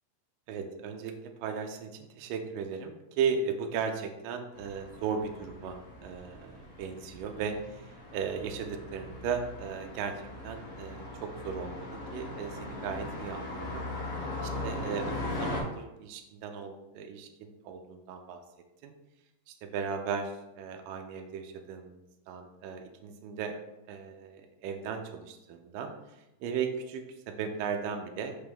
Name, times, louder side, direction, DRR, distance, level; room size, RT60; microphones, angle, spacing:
voice 1, 0.5-10.1 10.4-13.9 14.6-18.4 18.8-18.9 19.5-23.6 23.9-28.4, right 6 dB, 85° right, 4 dB, 2.2 m, -36 dB
sound 1, 4.5-15.6, left 2 dB, 50° left, 2.1 m, -39 dB
5.9 x 5.4 x 3.4 m, 0.95 s
omnidirectional pair, 4.0 m